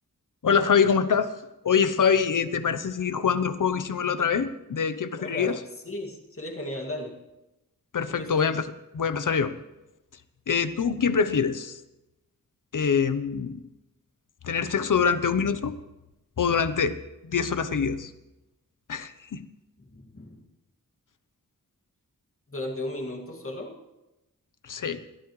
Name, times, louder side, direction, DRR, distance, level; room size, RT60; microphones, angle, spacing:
voice 1, 0.4-1.3 1.6-5.6 7.9-8.7 8.9-9.5 10.5-11.8 12.7-13.6 14.4-15.7 16.4-17.0 17.2-18.1 18.9-19.4 24.6-25.0, left 6 dB, 65° left, 12 dB, 0.9 m, -24 dB
voice 2, 5.2-5.6 5.9-7.2 8.1-8.4 19.8-20.4 22.5-23.7, left 1 dB, 40° left, 0 dB, 2.3 m, -35 dB
21.5 x 14.0 x 3.2 m, 0.99 s
wide cardioid pair, 110°, 34 cm